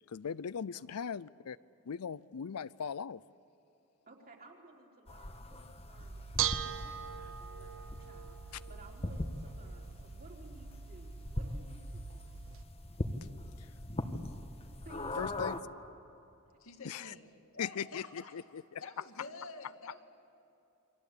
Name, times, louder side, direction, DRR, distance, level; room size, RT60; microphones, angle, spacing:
voice 1, 0.1-1.6 1.9-3.2 13.6-13.7 15.2-15.7 16.8-17.1 17.6-18.8, left 7 dB, 85° left, 18 dB, 0.5 m, -39 dB
voice 2, 4.1-12.3 14.8-15.3 16.8-16.9, right 2 dB, 40° right, -1 dB, 4.2 m, -57 dB
sound 1, 5.1-15.6, left 1 dB, 25° left, 1.4 m, -41 dB
Bell / Dishes pots and pans, 6.0-12.6, right 9 dB, 65° right, 0.9 m, -41 dB
voice 3, 16.6-17.3 17.5-18.3 18.8-20.0, left 4 dB, 65° left, 4 dB, 2.2 m, -48 dB
28.5 x 23.5 x 8.6 m, 2.9 s
head